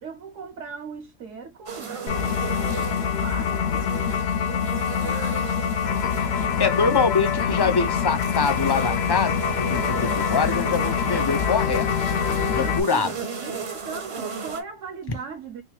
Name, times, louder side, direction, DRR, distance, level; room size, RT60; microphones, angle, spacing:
voice 1, 0.0-6.8 7.2-7.8 12.6-15.6, right 5 dB, 75° right, 1.2 m, -39 dB
sound 1, 1.7-14.6, right 5 dB, 35° right, 0.6 m, -35 dB
sound 2, 2.1-12.8, left 7 dB, 65° left, 0.8 m, -25 dB
voice 2, 6.6-11.9 12.5-13.1, left 5 dB, 40° left, 0.3 m, -24 dB
3.3 x 3.0 x 3.1 m
omnidirectional pair, 1.3 m